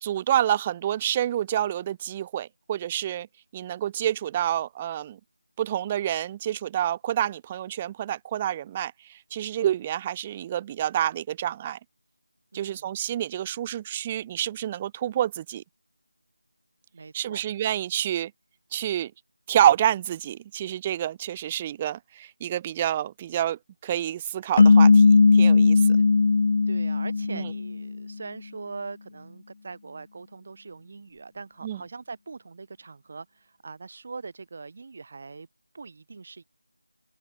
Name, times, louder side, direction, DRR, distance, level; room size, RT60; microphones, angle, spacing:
voice 1, 0.0-3.3 3.5-5.2 5.6-11.8 12.5-15.6 17.1-18.3 18.7-19.1 19.5-26.0 27.3-27.5 31.6-31.8, right 11 dB, 15° right, 1.6 m, -28 dB
voice 2, 12.5-12.9 16.9-17.4 26.0-26.1 26.7-35.5 35.7-36.4, right 4 dB, 35° right, 6.2 m, -42 dB
sound 1, 24.6-27.9, left 4 dB, 35° left, 1.2 m, -17 dB
open air
figure-of-eight pair, 170°, 0 cm